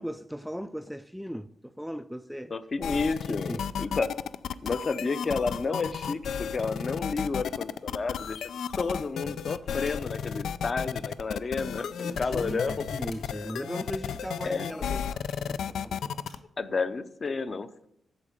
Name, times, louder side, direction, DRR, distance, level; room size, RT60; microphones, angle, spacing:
voice 1, 0.0-2.6 3.0-3.6 12.0-16.3, equal, ahead, 0.3 m, -38 dB
voice 2, 2.5-4.2 4.6-8.4 8.8-13.1 14.4-14.7 16.6-17.9, left 4 dB, 35° left, 0.7 m, -31 dB
sound 1, 2.8-16.4, left 8 dB, 85° left, 0.4 m, -33 dB
sound 2, 3.5-3.7 4.6-4.8 5.6-6.1 7.2-7.3 8.3-8.9 9.9-10.0 11.0-11.2 11.9-12.1 13.1-13.2 14.4-14.7 15.3-15.4 16.3-16.4, left 4 dB, 55° left, 2.8 m, -53 dB
8.6 x 7.3 x 8.4 m
wide cardioid pair, 130°, 0 cm